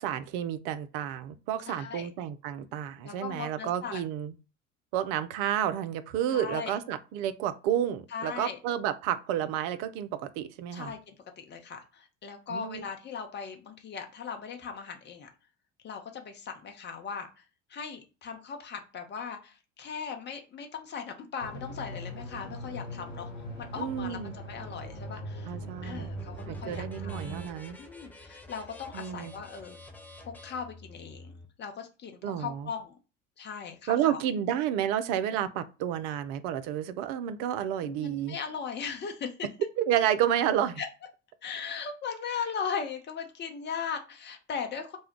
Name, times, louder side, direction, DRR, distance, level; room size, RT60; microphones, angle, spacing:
voice 1, 0.0-4.3 4.9-10.9 12.5-12.8 23.8-24.4 25.5-26.1 26.5-27.8 28.9-29.3 32.2-32.7 33.9-38.4 39.8-40.8, right 10 dB, 55° right, 0.5 m, -30 dB
voice 2, 1.6-2.1 3.0-4.0 6.3-6.8 8.1-8.6 10.7-15.3 15.8-17.4 17.7-23.3 23.6-25.5 25.8-27.4 27.8-29.8 30.2-33.0 33.4-34.2 37.8-39.5 40.8-40.9 41.4-45.0, left 6 dB, 30° left, 0.7 m, -38 dB
sound 1, 21.4-27.5, right 1 dB, 85° left, 0.9 m, -40 dB
sound 2, 25.8-31.5, left 2 dB, 5° left, 0.4 m, -50 dB
2.2 x 2.1 x 3.6 m
figure-of-eight pair, 60°, 37 cm